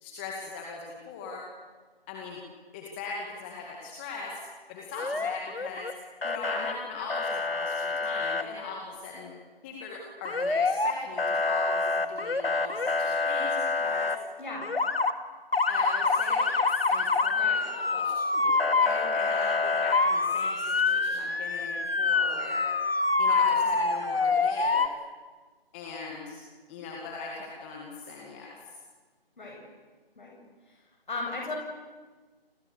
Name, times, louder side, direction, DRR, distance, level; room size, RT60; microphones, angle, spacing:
voice 1, 0.0-1.4 2.1-2.4 2.7-4.4 4.7-5.9 6.2-9.3 9.6-14.1 15.7-22.7 23.2-24.9 25.7-26.4 26.7-28.6, left 4 dB, 10° left, -1 dB, 2.2 m, -39 dB
Motor vehicle (road) / Siren, 4.9-5.9 6.2-6.7 7.1-8.4 10.2-10.9 11.2-14.2 14.6-15.1 15.5-24.9, left 4 dB, 75° left, 2.2 m, -26 dB
voice 2, 31.1-31.5, left 3 dB, 55° left, 0 dB, 7.8 m, -35 dB
29.5 x 27.5 x 6.9 m, 1.4 s
figure-of-eight pair, 160°, 30 cm